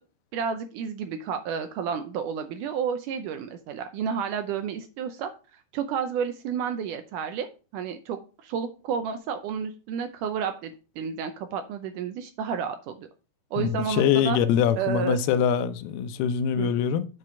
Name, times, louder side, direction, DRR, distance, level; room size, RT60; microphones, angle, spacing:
voice 1, 0.3-13.1 13.5-14.4 14.8-15.2 16.6-16.7, right 7 dB, 80° right, 1.8 m, -31 dB
voice 2, 13.6-17.1, left 8 dB, 85° left, 2.6 m, -24 dB
7.6 x 4.8 x 5.6 m
omnidirectional pair, 4.4 m